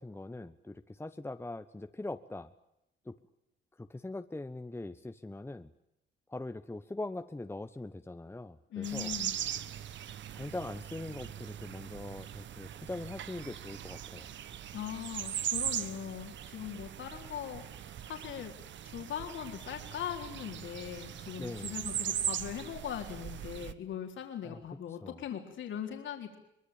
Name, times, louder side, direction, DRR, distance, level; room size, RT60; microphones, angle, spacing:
voice 1, 0.0-2.5 3.0-3.2 3.8-5.7 6.3-9.2 10.3-14.3 21.4-21.8 24.4-24.6 24.9-25.2, left 2 dB, 10° left, 9 dB, 1.2 m, -42 dB
voice 2, 8.7-9.3 14.7-18.5 18.8-26.4, left 9 dB, 75° left, 3 dB, 4.0 m, -40 dB
sound 1, 8.8-23.7, right 10 dB, 65° right, 1.4 m, -40 dB
23.5 x 21.5 x 8.9 m, 0.82 s
cardioid pair, 90°, 20 cm